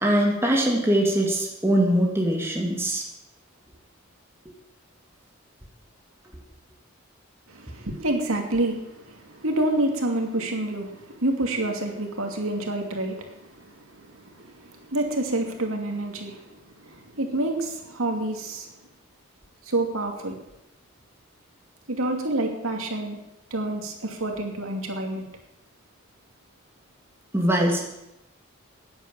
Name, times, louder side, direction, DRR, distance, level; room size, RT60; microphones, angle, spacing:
voice 1, 0.0-3.0 27.3-27.8, right 1 dB, 10° right, -1 dB, 2.3 m, -22 dB
voice 2, 7.5-18.7 19.6-20.4 21.9-23.2 23.5-25.2, right 1 dB, 80° right, 2 dB, 2.7 m, -28 dB
14.5 x 10.0 x 7.7 m, 0.90 s
head